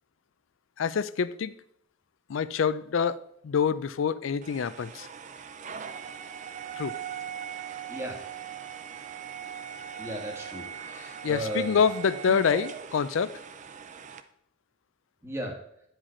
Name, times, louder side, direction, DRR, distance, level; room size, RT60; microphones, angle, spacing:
voice 1, 0.8-1.5 2.3-3.2 3.4-5.1 6.8-6.9 11.0-13.4, left 6 dB, 65° left, 0.4 m, -26 dB
sound 1, 4.4-14.2, right 8 dB, 35° right, 0.5 m, -40 dB
voice 2, 10.0-11.8 12.3-12.6 15.2-15.6, right 1 dB, 15° right, 1.3 m, -35 dB
10.0 x 4.9 x 4.3 m
head